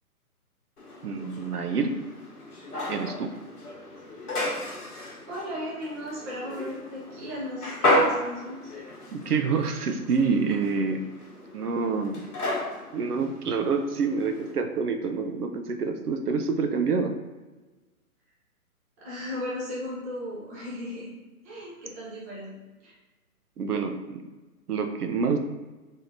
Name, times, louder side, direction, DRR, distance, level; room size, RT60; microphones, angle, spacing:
sound 1, 0.8-14.5, left 1 dB, 85° left, 1.1 m, -33 dB
voice 1, 1.0-2.0 2.9-3.3 9.1-11.1 11.5-12.2 12.9-17.1 23.6-24.3 24.7-25.4, right 5 dB, 90° right, 5 dB, 0.6 m, -27 dB
voice 2, 5.3-8.7 19.0-21.1 21.4-22.5 22.8-22.9, left 1 dB, 10° right, -7 dB, 0.5 m, -36 dB
3.7 x 3.5 x 2.6 m, 1.2 s
figure-of-eight pair, 130°, 45 cm